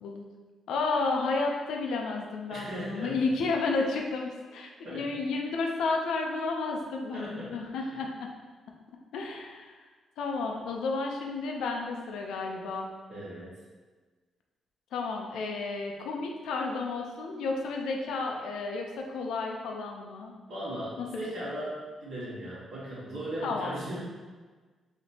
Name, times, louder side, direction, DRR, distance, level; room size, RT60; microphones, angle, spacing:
voice 1, 0.7-8.3 9.1-9.7 10.2-12.9 14.9-20.3 21.0-21.1 23.4-23.7, left 3 dB, 85° left, 1 dB, 0.5 m, -32 dB
voice 2, 2.5-3.2 4.8-5.1 7.1-8.0 13.1-13.6 20.5-24.0, right 1 dB, 75° right, -10 dB, 1.4 m, -38 dB
4.2 x 2.9 x 2.8 m, 1.4 s
cardioid pair, 95°, 0 cm